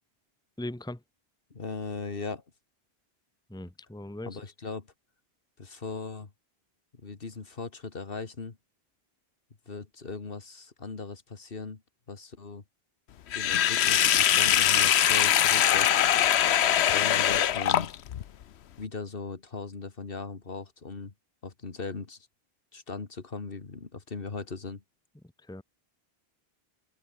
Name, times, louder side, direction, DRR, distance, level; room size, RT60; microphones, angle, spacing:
voice 1, 0.6-1.0 3.5-4.4 25.5-25.6, left 1 dB, 5° left, 1.2 m, -39 dB
voice 2, 1.5-2.4 4.2-4.9 5.6-6.3 7.0-8.6 9.7-11.8 12.1-12.6 13.3-16.1 16.9-17.9 18.8-21.1 21.4-22.3 22.7-24.8, left 4 dB, 60° left, 2.0 m, -38 dB
Sink (filling or washing), 13.3-18.2, left 10 dB, 90° left, 1.0 m, -22 dB
omnidirectional pair, 1.1 m